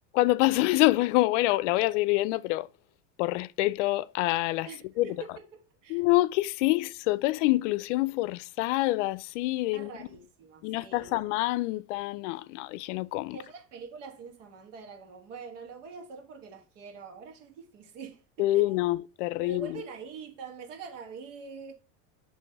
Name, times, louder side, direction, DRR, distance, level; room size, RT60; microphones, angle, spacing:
voice 1, 0.1-2.7 3.2-4.7 5.0-5.1 5.9-10.1 10.6-13.4 18.4-19.8, left 18 dB, 75° left, 0.5 m, -26 dB
voice 2, 4.6-5.5 5.8-6.0 9.7-11.1 13.3-18.8 19.4-21.7, right 5 dB, 80° right, 1.6 m, -44 dB
6.5 x 3.1 x 5.3 m
supercardioid pair, 150°, 37 cm